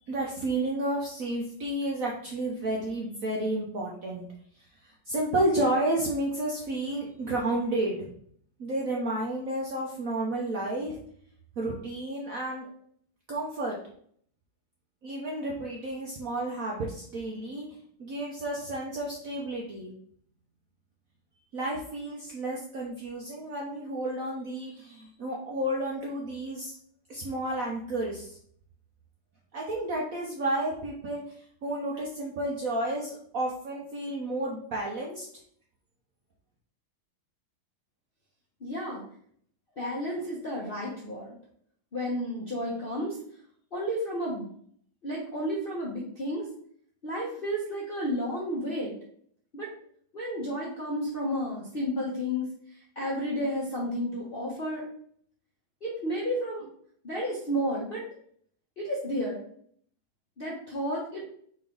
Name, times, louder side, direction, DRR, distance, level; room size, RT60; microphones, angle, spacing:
voice 1, 0.1-4.2 4.5-8.1 8.6-11.0 11.6-12.7 13.3-13.8 15.0-19.9 21.5-26.8 27.1-28.4 29.5-31.4 31.6-35.3, right 1 dB, 65° right, -2 dB, 0.8 m, -31 dB
voice 2, 38.6-39.0 39.8-41.4 41.9-43.2 43.7-44.5 45.0-46.5 47.0-48.9 49.5-49.7 50.1-54.9 55.8-56.7 57.0-58.0 58.8-59.4 60.4-61.2, equal, 55° left, -5 dB, 0.6 m, -32 dB
4.3 x 3.3 x 3.7 m, 0.62 s
omnidirectional pair, 2.2 m